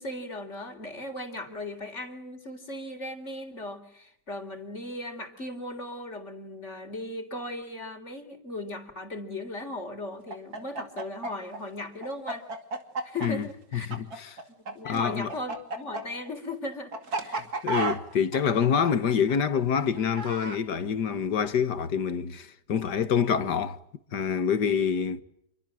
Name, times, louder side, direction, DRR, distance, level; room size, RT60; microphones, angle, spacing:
voice 1, 0.0-12.5 13.0-13.9 14.7-17.5, left 1 dB, 40° left, 4.2 m, -37 dB
Chicken rooster, 10.3-14.7 15.0-20.6, right 3 dB, 60° right, 3.1 m, -33 dB
voice 2, 13.7-14.3 14.8-15.3 17.6-23.8 24.1-25.2, left 7 dB, 75° left, 2.1 m, -26 dB
28.5 x 24.0 x 7.7 m
omnidirectional pair, 1.8 m